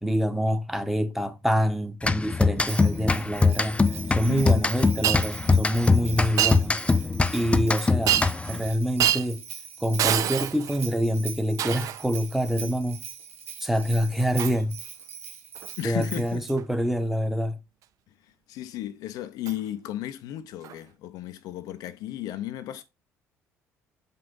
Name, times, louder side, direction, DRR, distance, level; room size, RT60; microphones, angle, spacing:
voice 1, 0.0-3.8 4.1-6.8 7.3-9.4 9.8-13.0 13.6-14.8 15.8-17.6, equal, 5° right, 1.1 m, -26 dB
sound 1, 2.0-8.7, left 4 dB, 15° left, 0.5 m, -23 dB
Bell, 2.6-16.4, right 7 dB, 75° right, 1.0 m, -41 dB
voice 2, 4.3-4.7 15.8-16.4 18.5-22.8, left 13 dB, 55° left, 0.6 m, -34 dB
Shatter, 5.0-5.2 6.4-6.6 8.1-8.5 9.0-9.3 10.0-10.8 11.6-12.0 14.4-14.6 15.5-15.7 16.5-16.6 19.5-19.6 20.6-20.7, right 11 dB, 50° right, 0.6 m, -25 dB
7.5 x 5.3 x 3.8 m
figure-of-eight pair, 50°, 7 cm